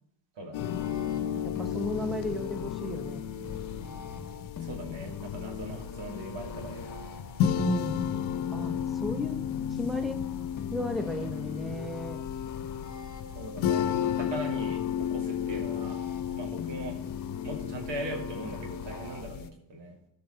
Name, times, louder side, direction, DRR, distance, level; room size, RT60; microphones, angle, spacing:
voice 1, 0.4-0.8 4.6-7.2 13.3-16.0 16.4-17.0 17.4-19.9, right 1 dB, 65° right, 1 dB, 2.7 m, -40 dB
sound 1, 0.5-19.5, left 9 dB, 75° left, 0.8 m, -33 dB
sound 2, 0.6-19.3, left 6 dB, 40° left, 1.1 m, -41 dB
voice 2, 1.4-3.2 7.6-8.1 8.5-9.4 9.7-10.2 10.7-12.2, left 1 dB, ahead, 6 dB, 0.9 m, -34 dB
14.5 x 5.7 x 3.9 m, 0.79 s
cardioid pair, 80°, 47 cm